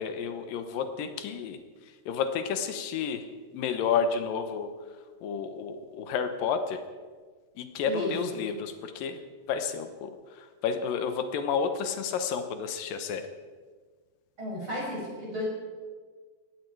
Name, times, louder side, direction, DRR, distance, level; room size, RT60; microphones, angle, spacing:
voice 1, 0.0-3.3 3.5-4.7 5.2-6.8 7.6-9.2 9.5-13.3, left 6 dB, 80° left, 9 dB, 2.7 m, -31 dB
voice 2, 14.4-15.5, left 1 dB, 35° right, -3 dB, 6.7 m, -33 dB
18.5 x 15.5 x 4.7 m, 1.5 s
omnidirectional pair, 4.0 m